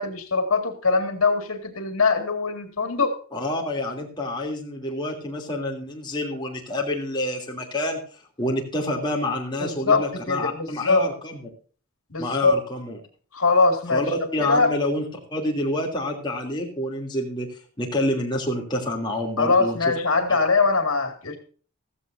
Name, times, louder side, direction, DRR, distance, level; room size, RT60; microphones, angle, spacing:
voice 1, 0.0-3.2 9.6-11.1 12.1-12.6 13.3-14.7 19.4-21.4, left 3 dB, 90° left, 7 dB, 2.1 m, -22 dB
voice 2, 3.3-8.0 8.4-11.4 12.2-13.0 13.9-15.0 15.3-17.5 17.8-19.9 20.3-20.4, left 1 dB, 20° left, 0 dB, 2.9 m, -28 dB
15.5 x 14.0 x 2.7 m, 0.40 s
head